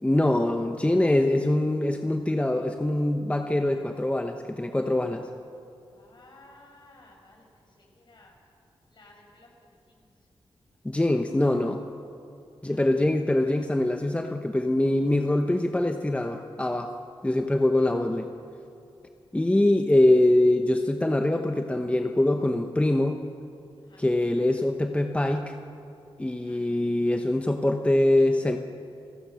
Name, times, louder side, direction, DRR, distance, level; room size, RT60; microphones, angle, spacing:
voice 1, 0.0-5.3 10.8-11.8 12.6-16.9 17.2-18.3 19.3-23.2 24.0-25.5 26.2-28.6, left 1 dB, 15° left, 5 dB, 1.0 m, -23 dB
voice 2, 5.9-8.3 8.9-10.1 12.6-12.8 17.8-17.9 23.8-24.0 26.3-26.6, left 2 dB, 55° left, 0 dB, 6.2 m, -56 dB
30.0 x 16.5 x 6.4 m, 2.5 s
cardioid pair, 75°, 9 cm